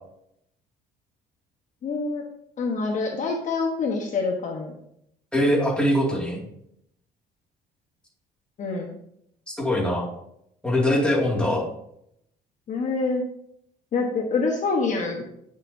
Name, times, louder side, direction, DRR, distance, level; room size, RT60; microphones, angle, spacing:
voice 1, 1.8-2.2 2.6-4.7 8.6-8.9 11.4-11.5 12.7-13.2 13.9-15.2, left 4 dB, 45° left, 1 dB, 1.1 m, -26 dB
voice 2, 5.3-6.4 9.5-10.1 10.6-11.6, left 1 dB, 5° left, -3 dB, 2.3 m, -22 dB
8.7 x 6.6 x 2.7 m, 0.74 s
cardioid pair, 110°, 17 cm